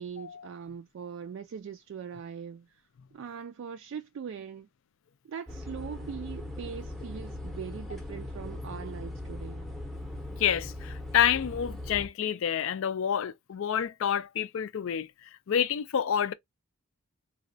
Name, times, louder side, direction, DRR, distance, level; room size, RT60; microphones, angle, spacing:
voice 1, 0.0-2.8 3.1-4.7 5.2-9.7, right 7 dB, 60° right, 0.3 m, -41 dB
sound 1, 5.5-12.1, left 1 dB, ahead, 0.7 m, -39 dB
voice 2, 10.4-15.1 15.5-16.3, left 9 dB, 60° left, 0.4 m, -28 dB
3.9 x 2.2 x 2.6 m
head